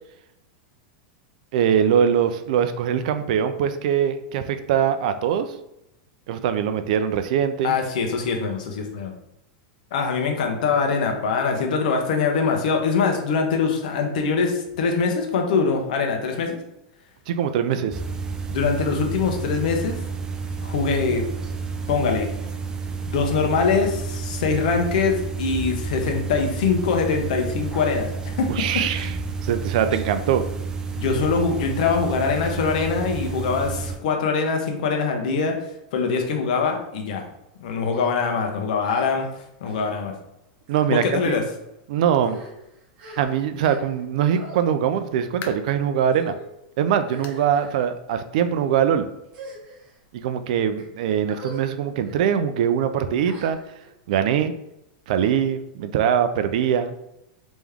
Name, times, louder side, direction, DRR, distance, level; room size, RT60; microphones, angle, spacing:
voice 1, 1.5-5.5 6.3-7.8 17.3-18.0 28.5-29.1 29.4-30.4 40.7-41.4 41.9-42.4 43.2-46.3 46.8-49.1 50.1-53.6 54.1-54.5 55.1-57.0, right 8 dB, 70° right, 10 dB, 0.4 m, -22 dB
voice 2, 7.6-9.1 9.9-16.6 18.5-20.0 20.6-21.2 21.9-22.3 23.1-28.5 28.7-29.1 30.9-35.6 35.9-37.2 37.6-39.3 39.6-40.1 40.9-41.4, left 5 dB, 70° left, 3 dB, 0.9 m, -23 dB
sound 1, 17.9-34.0, right 4 dB, 15° right, 0.5 m, -30 dB
sound 2, 37.9-38.1 38.8-39.3 39.6-39.9 40.6-40.9 41.6-41.7 42.1-44.1 44.3-44.6 45.4-45.7 46.1-46.5 47.0-47.8 48.5-48.8 49.3-50.0 50.6-50.8 51.3-51.7 52.0-52.2 53.2-53.9, equal, 45° right, 1.3 m, -42 dB
sound 3, 45.4-45.8 46.3-46.5 47.2-47.5 47.8-47.9 48.4-48.5 49.6-49.7, left 6 dB, 40° left, 0.5 m, -41 dB
3.4 x 3.0 x 3.5 m, 0.85 s
supercardioid pair, 130°, 4 cm